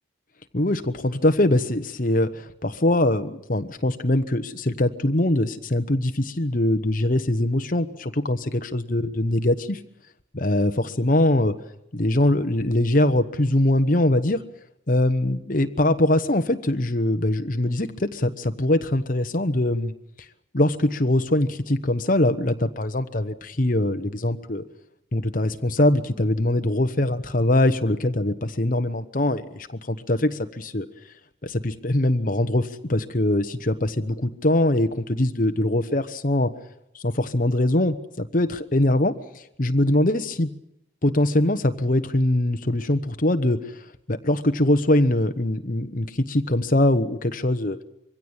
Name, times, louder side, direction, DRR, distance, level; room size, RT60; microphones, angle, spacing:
voice 1, 0.5-9.8 10.3-11.5 11.9-14.4 14.9-19.9 20.5-24.6 25.1-30.8 31.4-36.5 37.0-39.1 39.6-40.5 41.0-43.6 44.1-47.8, left 1 dB, 40° left, 8 dB, 1.1 m, -22 dB
23.5 x 16.5 x 9.0 m, 0.81 s
head